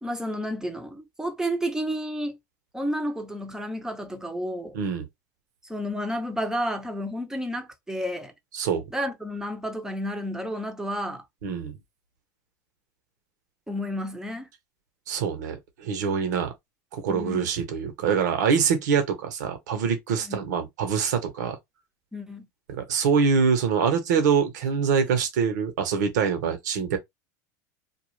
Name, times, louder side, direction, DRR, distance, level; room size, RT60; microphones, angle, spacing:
voice 1, 0.0-2.4 2.7-4.8 5.7-8.3 8.9-11.2 13.7-14.5 17.1-17.5 20.3-20.5 22.1-22.5, equal, 5° right, 0.7 m, -31 dB
voice 2, 4.7-5.1 8.5-8.8 11.4-11.7 15.1-16.5 16.9-21.6 22.7-27.0, right 6 dB, 80° right, 0.9 m, -24 dB
2.4 x 2.3 x 3.1 m
hypercardioid pair, 105°, 9 cm